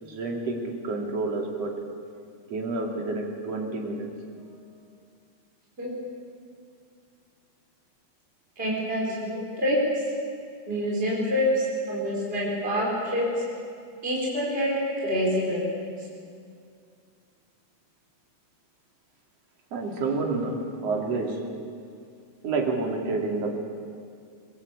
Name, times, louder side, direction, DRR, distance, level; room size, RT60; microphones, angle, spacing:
voice 1, 0.0-1.7 2.5-4.1 19.7-21.4 22.4-23.6, right 3 dB, 55° right, 1 dB, 3.9 m, -29 dB
voice 2, 8.6-9.8 10.7-12.9 13.1-13.2 14.0-14.7 15.0-15.6, equal, 15° right, -5 dB, 5.2 m, -26 dB
23.0 x 22.0 x 8.7 m, 2.3 s
omnidirectional pair, 3.5 m